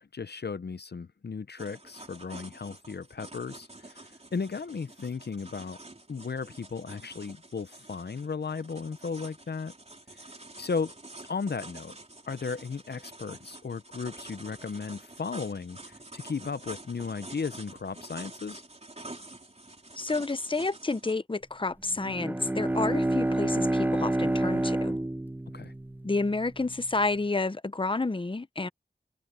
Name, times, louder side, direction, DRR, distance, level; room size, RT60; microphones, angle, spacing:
voice 1, 0.0-5.8 6.1-9.7 10.6-10.9 11.3-12.0 12.3-18.6 25.5-25.7, left 5 dB, 65° left, 0.6 m, -35 dB
sound 1, 1.6-21.1, right 2 dB, 35° right, 3.4 m, -48 dB
voice 2, 20.0-25.0 26.0-28.7, left 3 dB, 30° left, 0.7 m, -30 dB
Bowed string instrument, 21.9-26.5, right 1 dB, 10° right, 0.4 m, -28 dB
open air
wide cardioid pair, 55°, 18 cm